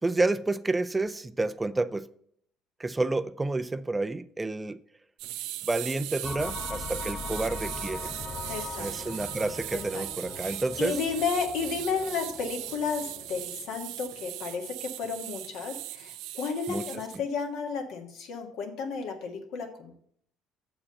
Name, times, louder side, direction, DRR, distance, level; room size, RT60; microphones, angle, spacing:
voice 1, 0.0-2.1 2.8-4.8 5.6-8.1 8.8-11.0 16.7-16.9, right 2 dB, 15° right, 0.3 m, -29 dB
tortoise toy, 5.2-17.2, right 15 dB, 85° right, 0.5 m, -39 dB
sound 1, 6.2-14.3, left 4 dB, 35° left, 0.9 m, -41 dB
voice 2, 8.5-9.1 9.7-10.0 10.4-19.9, left 5 dB, 75° left, 1.6 m, -33 dB
7.3 x 4.8 x 6.4 m
cardioid pair, 105°, 0 cm